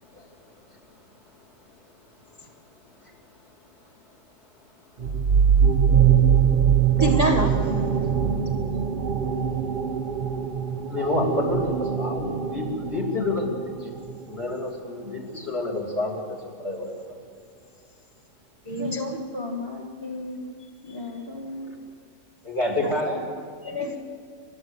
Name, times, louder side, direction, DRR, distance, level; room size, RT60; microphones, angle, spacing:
sound 1, 5.0-14.4, right 7 dB, 45° right, 0.6 m, -22 dB
voice 1, 7.0-7.9 18.7-19.2 22.8-22.9 23.6-24.0, right 1 dB, 25° right, 3 dB, 1.4 m, -26 dB
voice 2, 10.9-13.5 13.8-13.9 14.3-17.2 22.4-23.3, left 2 dB, 35° left, 0 dB, 3.3 m, -28 dB
voice 3, 18.8-20.5 20.8-21.9, left 2 dB, 15° left, -1 dB, 1.7 m, -35 dB
28.0 x 12.5 x 8.1 m, 2.3 s
omnidirectional pair, 1.8 m